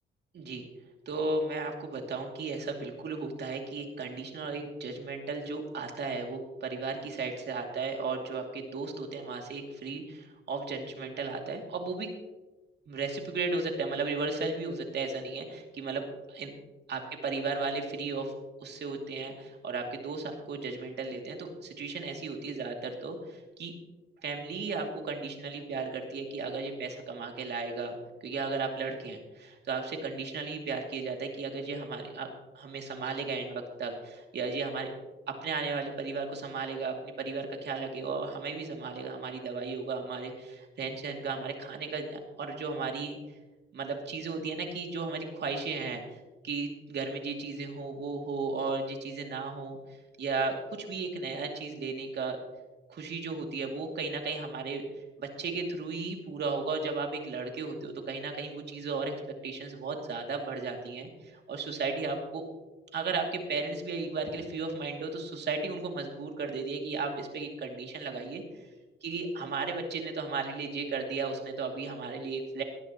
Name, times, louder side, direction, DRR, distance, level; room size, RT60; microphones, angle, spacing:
voice 1, 0.3-0.6 1.1-12.1 12.9-16.5 16.9-18.3 18.6-23.7 24.2-27.9 28.2-32.3 32.5-34.9 35.4-42.1 42.4-43.2 43.7-46.2 46.4-49.8 50.2-52.4 52.9-54.8 55.2-59.1 59.4-62.4 62.9-68.4 69.0-72.6, right 4 dB, 60° right, 2 dB, 2.6 m, -35 dB
18.0 x 11.5 x 3.0 m, 1.2 s
cardioid pair, 90°, 20 cm